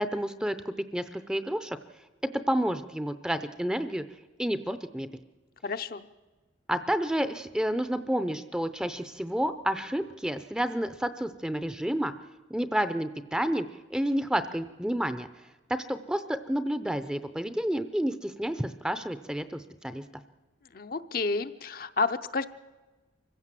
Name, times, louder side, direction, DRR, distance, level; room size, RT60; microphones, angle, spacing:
voice 1, 0.0-1.8 2.5-4.0 4.4-5.1 6.7-12.1 12.5-15.3 15.7-20.0, equal, 5° right, 11 dB, 0.6 m, -30 dB
voice 2, 5.6-6.1 20.7-22.4, left 4 dB, 50° left, 9 dB, 0.6 m, -30 dB
24.5 x 16.0 x 7.6 m, 1.3 s
head